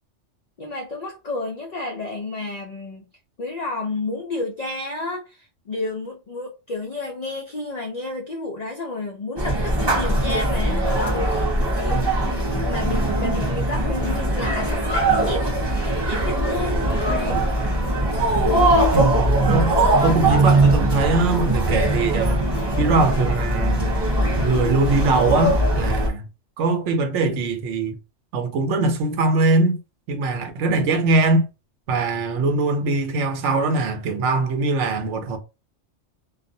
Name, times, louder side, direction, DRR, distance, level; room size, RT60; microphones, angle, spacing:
voice 1, 0.6-3.1 3.4-17.5, left 2 dB, 80° left, 0.3 m, -31 dB
sound 1, 9.4-26.1, right 1 dB, 25° right, 0.6 m, -21 dB
voice 2, 18.9-19.7 20.0-22.5 22.8-24.0 24.4-26.2 26.6-28.0 28.3-29.8 30.1-31.5 31.9-35.4, right 3 dB, 75° right, 0.9 m, -22 dB
2.4 x 2.0 x 2.6 m
omnidirectional pair, 1.3 m